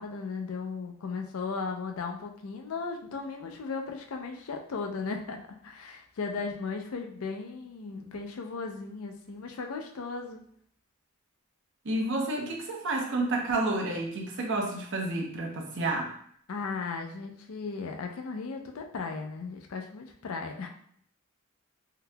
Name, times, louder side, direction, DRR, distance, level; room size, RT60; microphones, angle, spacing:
voice 1, 0.0-10.4 16.5-20.7, left 4 dB, 70° left, 3 dB, 0.5 m, -36 dB
voice 2, 11.8-16.1, right 2 dB, 60° right, 1 dB, 0.7 m, -30 dB
3.8 x 2.7 x 2.2 m, 0.63 s
head